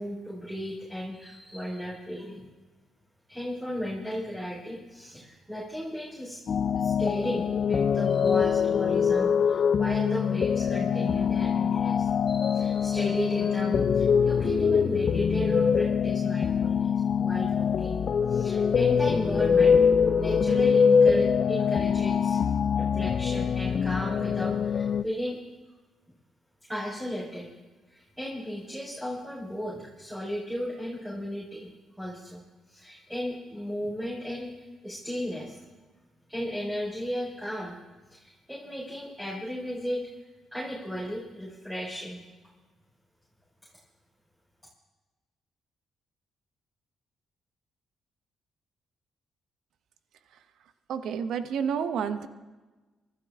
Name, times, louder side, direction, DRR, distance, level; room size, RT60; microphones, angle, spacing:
voice 1, 0.0-2.5 3.3-6.4 6.7-18.0 18.3-19.8 20.2-22.4 22.8-25.4 26.7-27.5 27.9-31.7 32.0-34.5 34.8-35.6 36.3-37.8 38.1-40.0 40.5-42.2, equal, 10° right, -4 dB, 4.3 m, -35 dB
sound 1, 6.5-25.0, left 6 dB, 55° left, 0.6 m, -24 dB
voice 2, 50.9-52.3, right 7 dB, 70° right, 11 dB, 1.0 m, -29 dB
24.0 x 12.5 x 3.6 m, 1.2 s
hypercardioid pair, 45°, 0 cm